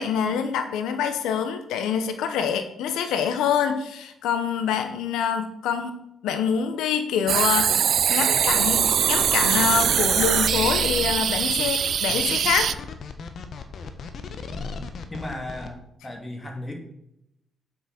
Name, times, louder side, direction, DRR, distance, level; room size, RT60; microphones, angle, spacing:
voice 1, 0.0-6.0 6.2-12.7, left 7 dB, 85° left, 8 dB, 1.0 m, -26 dB
sound 1, 7.3-12.7, right 8 dB, 60° right, 0.4 m, -22 dB
sound 2, 8.3-15.7, left 4 dB, 60° left, 1.2 m, -35 dB
voice 2, 14.5-16.8, left 1 dB, 20° left, 2 dB, 2.2 m, -36 dB
7.6 x 6.6 x 5.9 m, 0.82 s
cardioid pair, 90°, 0 cm